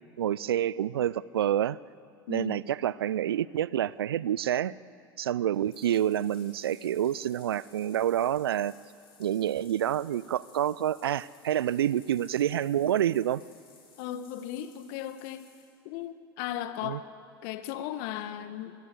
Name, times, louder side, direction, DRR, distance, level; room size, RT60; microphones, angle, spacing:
voice 1, 0.2-1.8 2.3-4.7 5.2-8.7 9.2-13.4 16.8-17.0, right 11 dB, 80° right, 21 dB, 0.5 m, -28 dB
voice 2, 2.3-2.6 14.0-15.5 15.8-17.0 17.4-18.7, left 12 dB, 60° left, 11 dB, 1.5 m, -36 dB
Bathtub (filling or washing), 5.5-15.6, left 5 dB, 75° left, 7.3 m, -58 dB
25.0 x 21.0 x 8.4 m, 2.3 s
hypercardioid pair, 80°, 12 cm